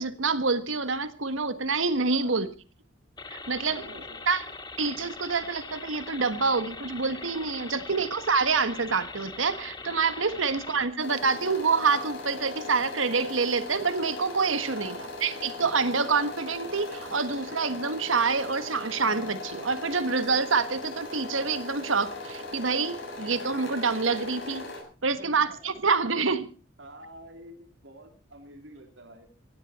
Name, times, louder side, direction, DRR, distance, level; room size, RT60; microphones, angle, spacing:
voice 1, 0.0-2.5 3.3-3.8 4.3-4.4 4.8-15.0 15.2-24.6 25.0-26.5, right 4 dB, 90° right, 12 dB, 1.6 m, -27 dB
voice 2, 2.1-2.4 3.7-4.2 7.7-8.2 10.3-10.9 14.7-15.1 25.2-25.7 26.8-29.3, right 1 dB, 65° right, 5 dB, 3.3 m, -47 dB
sound 1, 3.2-10.9, left 4 dB, 20° left, 1.4 m, -42 dB
sound 2, 11.0-24.8, left 3 dB, 70° left, 7.8 m, -39 dB
17.0 x 16.0 x 4.4 m, 0.35 s
head